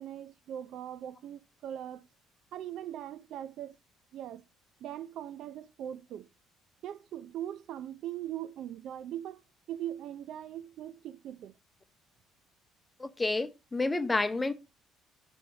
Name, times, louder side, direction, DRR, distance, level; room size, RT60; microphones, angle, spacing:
voice 1, 0.0-2.1 2.5-3.8 4.1-4.4 4.8-6.3 6.8-9.4 9.7-11.6, right 11 dB, 65° right, 0.4 m, -40 dB
voice 2, 13.0-14.5, left 2 dB, 20° left, 0.8 m, -29 dB
5.6 x 4.0 x 5.9 m
hypercardioid pair, 65°, 0 cm